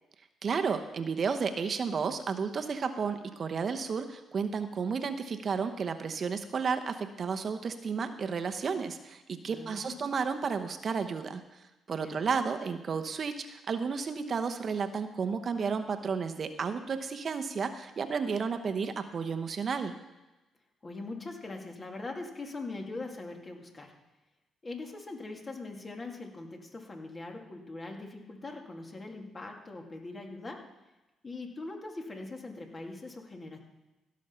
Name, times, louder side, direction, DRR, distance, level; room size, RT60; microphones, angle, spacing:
voice 1, 0.4-19.9, right 5 dB, 50° right, 8 dB, 0.9 m, -32 dB
voice 2, 9.4-10.1 12.0-12.2 20.8-23.9 24.6-30.6 31.2-33.6, left 2 dB, 35° left, 2 dB, 2.4 m, -41 dB
16.0 x 6.4 x 5.7 m, 1.1 s
supercardioid pair, 65°, 0 cm